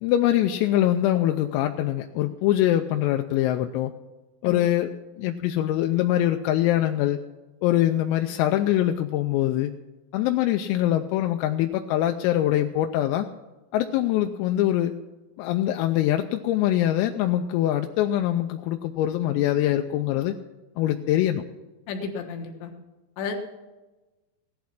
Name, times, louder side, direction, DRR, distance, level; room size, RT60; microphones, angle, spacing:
voice 1, 0.0-3.9 4.4-7.2 7.6-9.7 10.1-13.3 13.7-14.9 15.4-20.3 20.8-21.4, left 13 dB, 90° left, 5 dB, 3.3 m, -23 dB
voice 2, 21.9-22.7 23.2-23.3, left 5 dB, 70° left, 3 dB, 3.3 m, -32 dB
16.5 x 11.5 x 5.9 m, 1.2 s
omnidirectional pair, 5.9 m